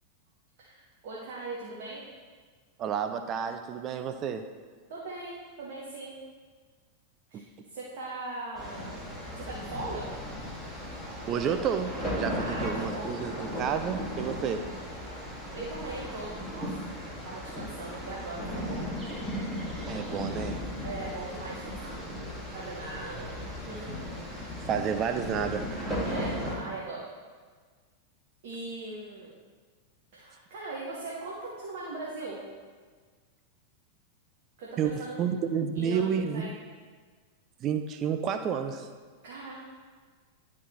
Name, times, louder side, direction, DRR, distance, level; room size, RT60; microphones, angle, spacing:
voice 1, 0.6-2.1 4.9-6.2 7.3-9.0 9.4-10.1 12.3-13.2 15.5-16.9 17.2-18.9 20.8-21.9 22.5-23.3 23.7-23.9 26.0-27.0 28.4-29.3 30.1-32.4 34.6-35.2 35.7-36.6 39.2-39.6, right 2 dB, 50° right, -6 dB, 1.4 m, -40 dB
voice 2, 2.8-4.4 7.3-7.4 11.3-14.6 19.9-20.6 24.6-25.7 34.8-34.9 35.2-36.5 37.6-38.9, right 7 dB, 30° right, 7 dB, 0.5 m, -30 dB
sound 1, 8.6-26.5, equal, 5° right, 2.0 m, -36 dB
11.0 x 4.3 x 4.3 m, 1.5 s
figure-of-eight pair, 90°, 0 cm